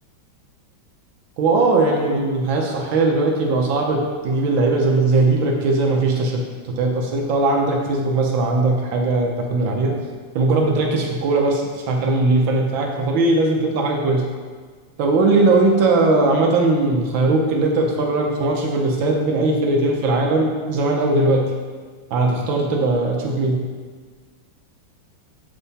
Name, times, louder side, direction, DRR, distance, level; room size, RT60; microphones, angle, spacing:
voice 1, 1.4-9.9 10.3-14.2 15.0-21.4 22.1-23.6, right 2 dB, 75° right, 1 dB, 1.5 m, -19 dB
6.9 x 5.5 x 4.1 m, 1.5 s
omnidirectional pair, 2.2 m